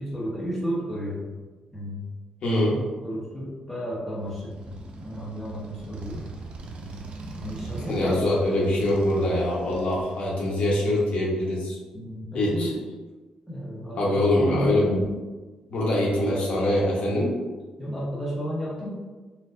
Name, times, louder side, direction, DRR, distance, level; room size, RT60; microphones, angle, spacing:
voice 1, 0.0-1.3 1.7-2.1 3.0-6.2 7.4-8.2 11.9-12.7 13.5-15.1 17.8-18.9, equal, ahead, -8 dB, 0.8 m, -32 dB
voice 2, 2.4-2.8 7.9-11.8 12.3-12.7 14.0-15.0 15.7-17.4, left 1 dB, 60° left, -4 dB, 0.9 m, -23 dB
Motorcycle, 4.2-10.9, right 2 dB, 50° right, 0.4 m, -40 dB
4.2 x 2.1 x 2.6 m, 1.3 s
wide cardioid pair, 155°, 2 cm